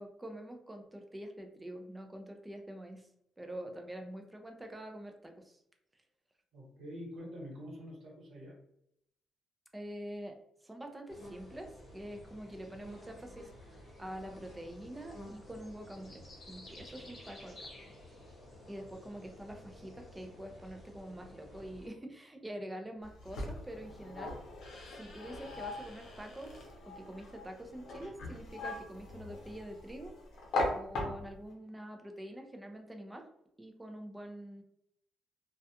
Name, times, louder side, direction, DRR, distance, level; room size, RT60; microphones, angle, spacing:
voice 1, 0.0-3.1 3.4-5.6 9.7-10.3 10.6-13.5 14.0-17.7 18.7-24.4 24.9-30.1 30.7-33.3 33.6-34.6, right 1 dB, 10° right, 4 dB, 0.4 m, -46 dB
voice 2, 6.5-8.6, equal, 55° right, -4 dB, 1.2 m, -46 dB
sound 1, 11.1-21.9, left 1 dB, 35° left, 0.9 m, -52 dB
sound 2, 23.0-31.5, left 2 dB, 70° left, 0.7 m, -40 dB
2.3 x 2.2 x 2.7 m, 0.76 s
cardioid pair, 150°, 0 cm